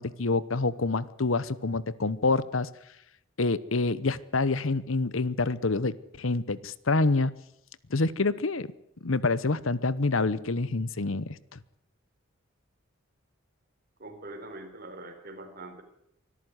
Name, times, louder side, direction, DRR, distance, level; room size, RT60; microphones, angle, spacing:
voice 1, 0.0-2.7 3.4-7.3 7.9-8.7 9.0-11.4, left 3 dB, 70° left, 18 dB, 1.0 m, -27 dB
voice 2, 14.0-15.8, right 2 dB, 45° right, 6 dB, 4.2 m, -43 dB
24.5 x 14.0 x 9.6 m, 0.78 s
head